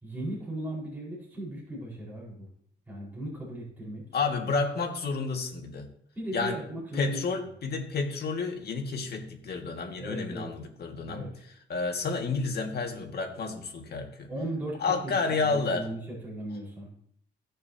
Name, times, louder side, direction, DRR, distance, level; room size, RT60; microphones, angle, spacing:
voice 1, 0.0-2.5 2.9-4.0 6.1-7.2 10.0-10.5 11.1-11.4 14.3-15.1 15.4-16.9, right 1 dB, 10° right, -6 dB, 4.7 m, -37 dB
voice 2, 4.1-5.9 6.3-6.6 7.0-11.3 11.7-14.3 14.8-15.9, left 4 dB, 55° left, 3 dB, 1.9 m, -30 dB
16.5 x 6.7 x 2.8 m, 0.66 s
cardioid pair, 90°, 20 cm